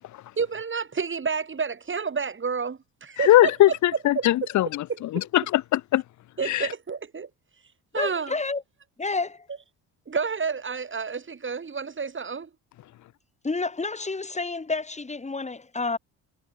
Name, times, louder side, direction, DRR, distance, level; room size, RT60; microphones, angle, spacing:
voice 1, 0.4-3.5 4.2-4.5 5.1-5.3 6.4-7.3 7.9-8.3 10.1-12.5, right 5 dB, 30° right, 2.3 m, -30 dB
voice 2, 3.2-6.0 6.4-6.7, left 14 dB, 45° left, 0.5 m, -21 dB
voice 3, 7.9-8.6 9.0-9.5 13.4-16.0, left 3 dB, 15° left, 2.5 m, -29 dB
cardioid pair, 95°, 43 cm